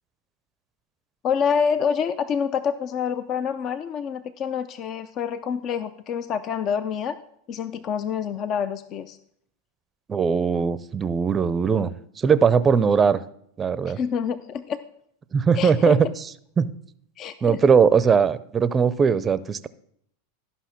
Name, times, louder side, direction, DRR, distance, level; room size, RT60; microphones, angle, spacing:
voice 1, 1.2-7.2 7.5-9.2 13.9-14.8 15.6-16.0 17.2-17.6, left 7 dB, 40° left, 13 dB, 0.5 m, -27 dB
voice 2, 10.1-11.9 12.2-13.2 13.6-14.0 15.3-16.1 16.6-16.7 17.4-19.7, right 6 dB, 25° right, 16 dB, 0.6 m, -20 dB
12.0 x 5.6 x 5.9 m, 0.68 s
hypercardioid pair, 100°, 0 cm